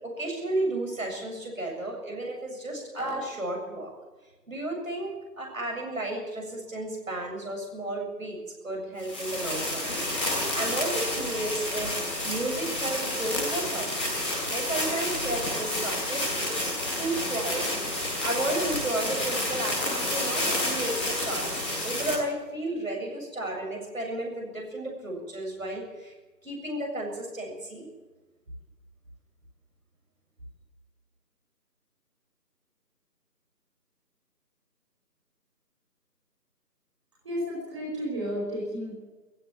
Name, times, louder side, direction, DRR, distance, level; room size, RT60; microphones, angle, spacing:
voice 1, 0.0-3.9 4.5-10.0 10.3-12.0 12.2-14.1 14.5-17.8 18.2-26.1 26.4-27.9, right 1 dB, 50° right, 0 dB, 7.3 m, -33 dB
sound 1, 9.0-22.1, left 1 dB, 5° left, 2.2 m, -30 dB
voice 2, 37.2-38.9, equal, 15° right, -5 dB, 5.2 m, -32 dB
19.0 x 16.0 x 8.8 m, 1.2 s
figure-of-eight pair, 170°, 50 cm